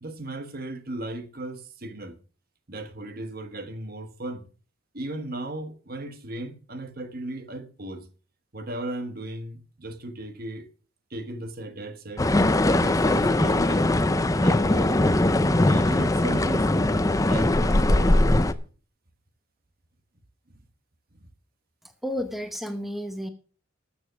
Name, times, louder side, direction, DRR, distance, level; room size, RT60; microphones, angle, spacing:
voice 1, 0.0-2.2 2.7-4.5 4.9-8.1 8.5-10.7 11.1-12.3 12.8-13.9 14.3-15.0 15.4-16.7 17.3-18.4, right 1 dB, 45° right, 1.2 m, -36 dB
sound 1, 12.2-18.5, left 1 dB, 15° left, 0.5 m, -21 dB
voice 2, 22.0-23.3, equal, ahead, 1.0 m, -31 dB
13.5 x 7.0 x 6.2 m
head